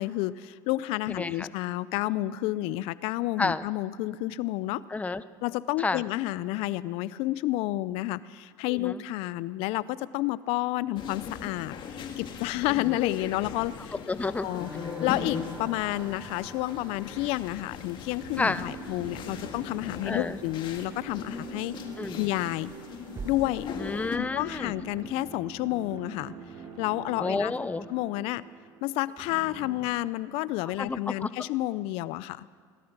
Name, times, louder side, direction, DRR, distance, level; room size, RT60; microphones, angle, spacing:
voice 1, 0.0-4.8 5.4-13.9 14.4-14.7 15.0-21.7 22.1-22.7 23.2-23.7 24.1-26.3 26.8-27.5 27.9-28.4 28.8-32.5, left 17 dB, 70° left, 18 dB, 0.5 m, -30 dB
voice 2, 1.1-1.5 3.4-3.6 4.9-5.2 5.8-6.0 8.7-9.0 12.7-13.0 14.1-14.5 18.4-18.6 20.1-20.4 22.0-22.2 23.8-24.7 27.2-27.9 30.8-31.3, left 3 dB, 15° left, 14 dB, 0.7 m, -30 dB
sound 1, 11.0-24.2, left 7 dB, 50° left, 1.8 m, -39 dB
sound 2, 14.4-29.8, right 4 dB, 45° right, 3.8 m, -46 dB
sound 3, 23.2-26.2, right 3 dB, 30° right, 1.3 m, -45 dB
19.0 x 12.5 x 6.0 m, 2.1 s
supercardioid pair, 85°, 10 cm